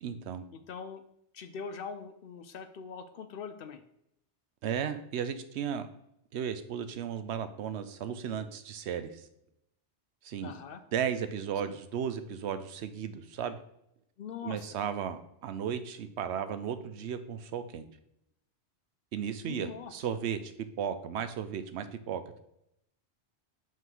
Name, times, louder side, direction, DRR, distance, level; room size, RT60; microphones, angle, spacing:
voice 1, 0.0-0.4 4.6-5.9 6.3-9.3 10.2-10.5 10.9-13.6 14.4-17.8 19.1-20.5 20.8-22.2, right 8 dB, 80° right, 10 dB, 0.9 m, -35 dB
voice 2, 0.5-1.0 1.3-3.8 10.4-10.8 11.7-11.8 14.2-14.7 19.4-19.9, left 6 dB, 65° left, 9 dB, 0.7 m, -42 dB
5.8 x 3.7 x 4.5 m, 0.79 s
omnidirectional pair, 1.1 m